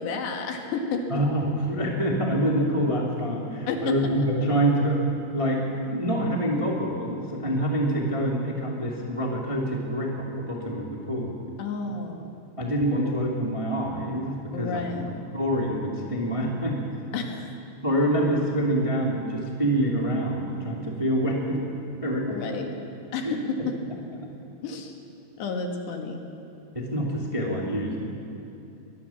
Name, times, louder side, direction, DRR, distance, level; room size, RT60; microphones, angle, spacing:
voice 1, 0.0-1.2 3.7-4.0 11.6-12.4 14.5-15.1 17.1-17.5 22.3-22.7 23.1-23.8 24.6-24.9 25.4-26.3, left 4 dB, 65° left, 3 dB, 3.5 m, -31 dB
voice 2, 1.1-5.0 5.3-11.3 12.6-14.8 15.3-16.8 17.8-22.4 23.2-23.7 24.2-24.3 26.7-28.0, right 1 dB, 25° right, -2 dB, 0.7 m, -26 dB
22.5 x 21.5 x 7.2 m, 2.7 s
omnidirectional pair, 5.8 m